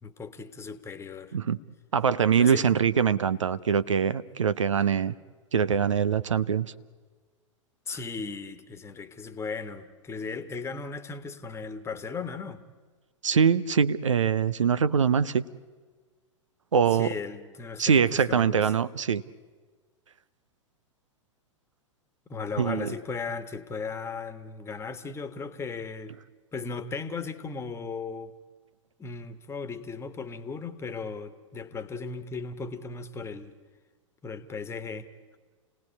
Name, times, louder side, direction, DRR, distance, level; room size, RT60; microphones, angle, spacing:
voice 1, 0.0-1.4 2.3-2.7 7.9-12.6 16.9-18.7 22.3-26.2 26.5-28.3 29.0-33.5 34.2-35.4, left 4 dB, 15° left, 11 dB, 1.5 m, -36 dB
voice 2, 1.9-5.1 5.5-6.7 13.2-15.4 16.7-17.1 17.8-19.2 22.6-22.9, right 7 dB, 70° right, 16 dB, 0.7 m, -23 dB
29.5 x 18.0 x 9.7 m, 1.5 s
figure-of-eight pair, 95°, 16 cm